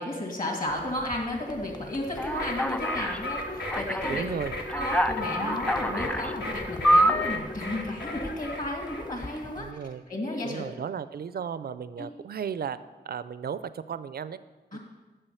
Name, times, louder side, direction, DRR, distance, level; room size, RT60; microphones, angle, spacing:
voice 1, 0.0-4.2 4.8-9.7 10.1-10.6 12.0-12.1 14.7-14.8, left 1 dB, 50° left, 0 dB, 2.3 m, -33 dB
sound 1, 0.7-9.7, left 1 dB, 25° left, 0.7 m, -46 dB
Alarm, 2.2-3.2 3.7-4.2 4.7-6.3 6.8-7.4, equal, 5° left, 0.3 m, -25 dB
sound 2, 2.3-9.4, left 1 dB, 75° left, 1.4 m, -35 dB
voice 2, 4.1-4.6 9.6-10.0 10.4-12.8 13.0-14.4 14.7-14.8, right 7 dB, 60° right, 14 dB, 0.4 m, -34 dB
8.9 x 6.7 x 5.6 m, 1.3 s
wide cardioid pair, 70°, 18 cm